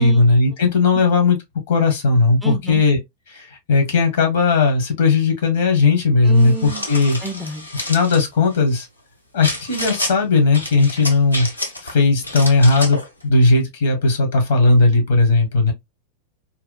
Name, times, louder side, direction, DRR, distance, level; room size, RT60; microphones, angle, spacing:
voice 1, 0.0-1.4 1.7-3.0 3.3-7.2 7.7-8.9 9.3-11.5 11.8-15.7, left 3 dB, 55° left, 1.0 m, -16 dB
voice 2, 2.4-2.8 6.2-6.8 7.2-7.7, right 4 dB, 5° right, 0.4 m, -29 dB
sound 1, 6.4-8.2 9.4-10.1 10.5-11.9 12.2-13.1, left 1 dB, 85° left, 0.6 m, -29 dB
2.8 x 2.2 x 2.2 m
figure-of-eight pair, 90°, 0 cm